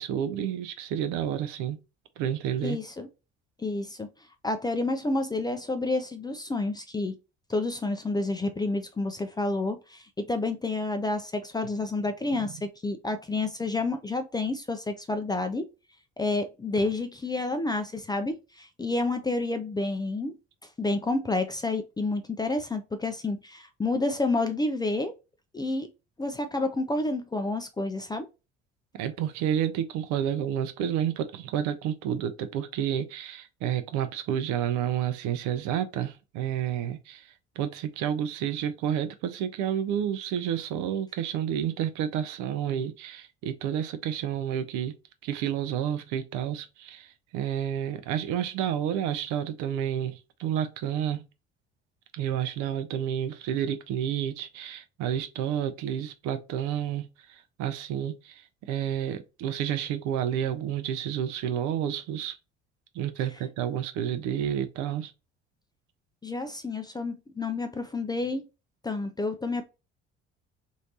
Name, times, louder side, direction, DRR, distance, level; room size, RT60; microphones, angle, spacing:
voice 1, 0.0-1.8 2.2-2.8 28.9-44.9 45.2-51.2 52.1-62.4 62.9-65.1, right 10 dB, 55° right, 0.6 m, -30 dB
voice 2, 2.6-3.1 3.6-4.1 4.4-7.1 7.5-15.7 16.2-20.4 20.8-25.1 25.5-25.9 26.2-28.3 66.2-68.5 68.8-69.6, left 2 dB, 10° left, 0.4 m, -29 dB
3.1 x 2.6 x 2.8 m
figure-of-eight pair, 55°, 34 cm